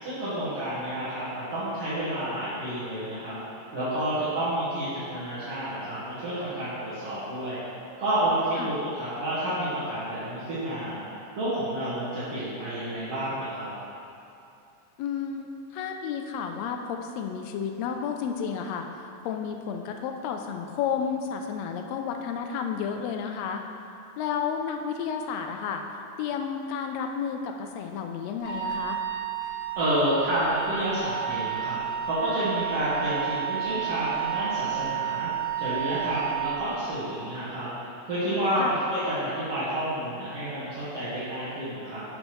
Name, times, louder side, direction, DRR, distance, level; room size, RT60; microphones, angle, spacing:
voice 1, 0.0-3.4 3.7-7.6 8.0-11.0 11.4-13.7 29.8-31.8 32.0-35.3 35.6-37.7 38.1-42.0, right 1 dB, 55° right, -12 dB, 2.4 m, -29 dB
voice 2, 15.0-23.6 24.2-29.0 38.6-38.8, left 7 dB, 80° left, 4 dB, 1.5 m, -32 dB
Wind instrument woodwind instrument, 28.4-36.6, right 9 dB, 65° left, 0.9 m, -31 dB
11.5 x 6.2 x 3.1 m, 2.6 s
omnidirectional pair, 3.5 m